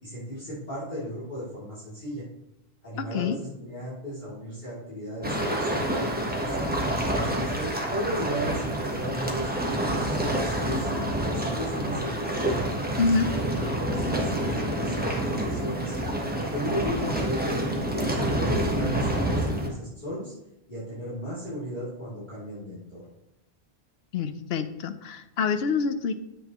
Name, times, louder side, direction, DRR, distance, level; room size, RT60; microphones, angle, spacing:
voice 1, 0.0-2.2 2.8-6.6 7.0-12.4 13.0-15.9 16.4-20.3 20.7-23.0, equal, 45° left, -10 dB, 3.1 m, -35 dB
voice 2, 3.0-3.4 13.0-13.3 24.1-26.1, left 4 dB, 75° left, 10 dB, 0.9 m, -26 dB
sound 1, 5.2-19.7, right 1 dB, 10° right, 1.1 m, -28 dB
9.8 x 7.8 x 3.0 m, 0.87 s
omnidirectional pair, 1.0 m